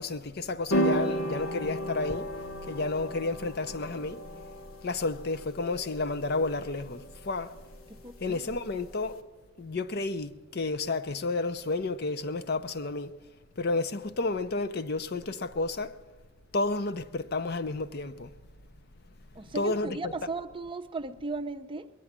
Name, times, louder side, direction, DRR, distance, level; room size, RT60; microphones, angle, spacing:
voice 1, 0.0-2.3 2.7-4.2 4.8-7.5 8.2-9.2 9.6-13.1 13.6-15.9 16.5-18.3 19.5-20.0, left 3 dB, 50° left, 0.6 m, -31 dB
sound 1, 0.7-9.1, equal, 85° left, 1.4 m, -34 dB
voice 2, 7.9-8.6 19.3-21.9, right 3 dB, 25° right, 0.5 m, -37 dB
21.0 x 9.2 x 7.4 m
head